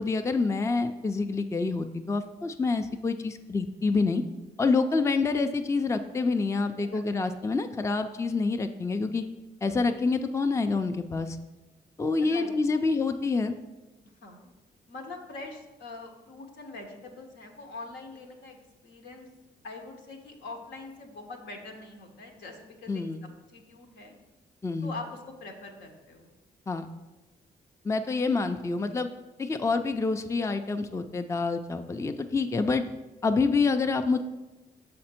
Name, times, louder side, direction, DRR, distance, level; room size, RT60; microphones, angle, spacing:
voice 1, 0.0-4.2 4.6-9.2 9.6-11.4 12.0-13.6 22.9-23.2 24.6-24.9 26.7-26.9 27.8-29.1 29.4-32.8 33.2-34.2, left 4 dB, 15° left, 8 dB, 0.4 m, -27 dB
voice 2, 6.8-7.5 12.2-12.9 14.2-14.5 14.9-18.6 18.8-19.3 19.6-23.0 23.5-24.1 24.8-26.3, left 3 dB, 80° left, 2 dB, 1.0 m, -43 dB
6.5 x 4.3 x 4.3 m, 1.1 s
cardioid pair, 65°, 18 cm